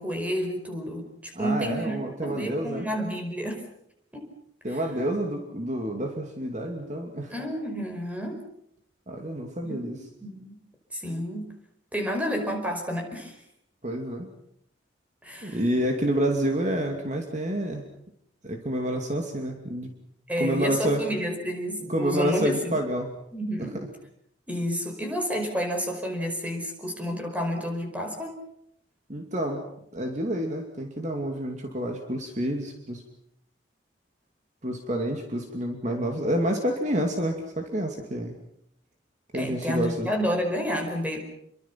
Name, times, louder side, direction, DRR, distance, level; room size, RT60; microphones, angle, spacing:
voice 1, 0.0-3.6 4.1-4.3 4.7-4.8 7.3-8.4 9.6-10.6 10.9-11.5 11.9-13.4 15.2-15.6 20.3-22.8 23.3-23.9 24.5-28.3 39.3-41.2, equal, 10° right, 3 dB, 5.2 m, -30 dB
voice 2, 1.3-2.9 4.6-7.3 9.1-10.0 13.8-14.3 15.4-17.8 18.4-19.9 20.4-21.0 21.9-23.2 29.1-29.6 29.9-33.0 34.6-38.3 39.3-40.1, right 1 dB, 40° right, 3 dB, 2.6 m, -28 dB
29.0 x 23.5 x 5.9 m, 0.75 s
head